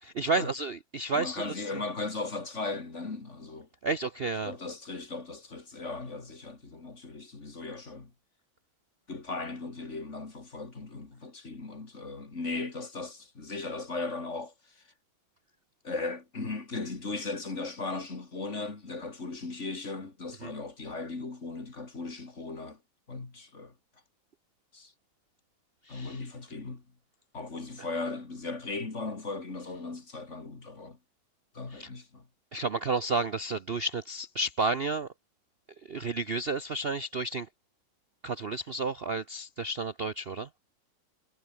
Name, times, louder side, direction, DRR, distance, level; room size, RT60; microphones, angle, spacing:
voice 1, 0.0-1.8 3.8-4.5 20.4-20.5 25.8-26.3 27.8-27.9 31.7-31.9 32.5-35.1 35.8-37.5 38.2-40.5, right 3 dB, 55° right, 0.6 m, -31 dB
voice 2, 1.1-3.7 4.4-8.1 9.1-14.8 15.8-22.8 23.1-23.7 24.7-24.9 25.9-26.8 27.3-31.0 31.5-32.3, left 3 dB, 35° left, 3.0 m, -37 dB
omnidirectional pair, 2.1 m